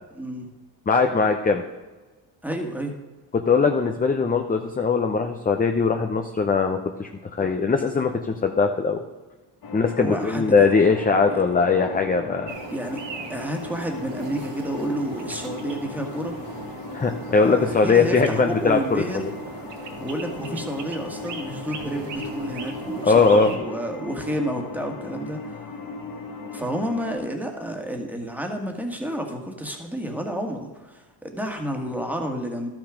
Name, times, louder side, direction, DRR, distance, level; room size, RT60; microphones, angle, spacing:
voice 1, 0.1-0.5 2.4-2.9 10.0-10.7 11.3-11.4 12.7-13.0 13.3-16.4 17.3-19.3 20.0-25.6 26.5-32.7, right 1 dB, 5° right, 2 dB, 1.8 m, -30 dB
voice 2, 0.9-1.6 3.3-9.0 9.7-12.5 16.9-19.0 23.0-23.5, left 4 dB, 20° left, 5 dB, 0.7 m, -20 dB
sound 1, 9.6-27.1, left 4 dB, 45° left, 1.3 m, -37 dB
sound 2, 12.5-23.6, right 5 dB, 70° right, 1.8 m, -39 dB
12.0 x 6.2 x 5.0 m, 1.2 s
cardioid pair, 80°, 45 cm